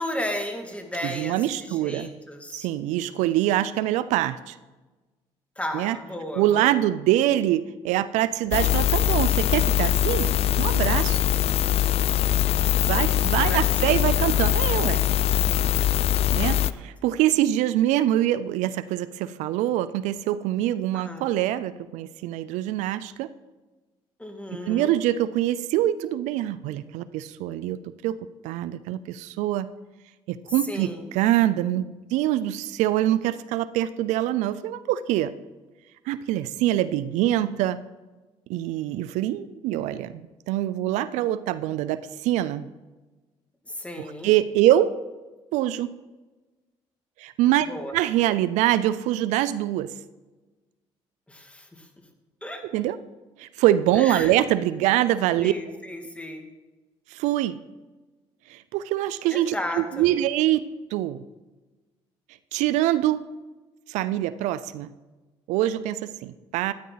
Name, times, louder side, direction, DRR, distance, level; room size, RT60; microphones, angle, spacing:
voice 1, 0.0-2.7 5.6-6.8 13.3-14.1 16.5-16.9 20.9-21.3 24.2-25.0 30.4-31.1 43.7-44.3 47.7-47.9 51.3-51.9 52.4-52.6 54.0-54.3 55.4-56.5 59.3-60.1, left 1 dB, 10° left, 4 dB, 2.2 m, -34 dB
voice 2, 1.0-2.1 2.5-4.6 5.7-6.0 6.4-11.2 12.8-15.1 16.3-23.3 24.5-28.2 28.4-29.7 30.3-35.3 36.1-37.8 38.5-42.7 44.2-44.9 45.5-45.9 47.2-47.7 47.9-49.9 52.7-53.0 53.4-55.5 57.1-57.6 58.5-60.6 60.9-61.2 62.5-63.2 63.9-64.9 65.5-66.7, right 13 dB, 80° right, 15 dB, 0.5 m, -24 dB
sound 1, 8.5-16.7, left 11 dB, 55° left, 0.4 m, -22 dB
13.0 x 9.5 x 4.0 m, 1.2 s
supercardioid pair, 70°, 12 cm